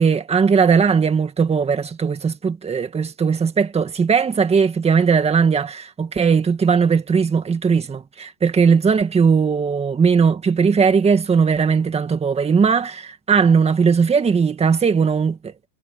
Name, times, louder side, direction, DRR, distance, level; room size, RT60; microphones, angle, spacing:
voice 1, 0.0-15.5, right 6 dB, 10° right, 2.0 m, -18 dB
supercardioid pair, 150°, 49 cm